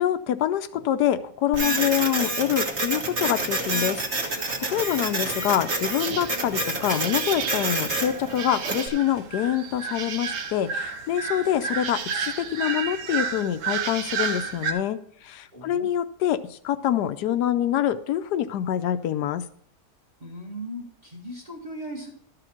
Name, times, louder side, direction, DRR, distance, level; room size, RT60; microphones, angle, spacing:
voice 1, 0.0-19.4, left 11 dB, 75° left, 12 dB, 1.1 m, -26 dB
Printer, 1.5-8.9, right 2 dB, 45° right, 1.6 m, -28 dB
voice 2, 4.7-5.0 15.5-15.9 20.2-22.1, right 1 dB, 25° right, -1 dB, 1.6 m, -38 dB
sound 1, 6.0-14.7, right 6 dB, 80° right, 1.5 m, -32 dB
12.5 x 5.0 x 5.9 m, 0.65 s
omnidirectional pair, 1.8 m